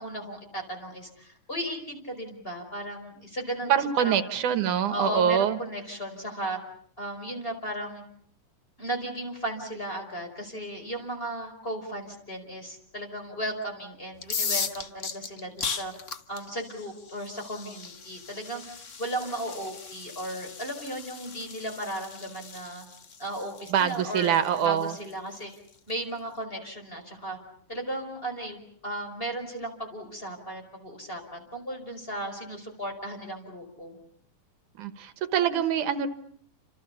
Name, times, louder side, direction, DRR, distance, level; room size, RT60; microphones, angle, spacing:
voice 1, 0.0-3.7 4.0-4.1 4.9-6.6 7.0-8.0 8.8-15.9 16.3-22.9 23.2-25.5 25.9-27.4 27.7-34.0, right 1 dB, 15° left, 4 dB, 5.2 m, -35 dB
voice 2, 3.7-5.6 23.7-25.0 34.8-36.1, right 9 dB, 80° right, 11 dB, 2.7 m, -25 dB
sound 1, 14.2-25.9, left 5 dB, 55° left, 0.8 m, -38 dB
30.0 x 27.0 x 6.9 m, 0.62 s
omnidirectional pair, 3.5 m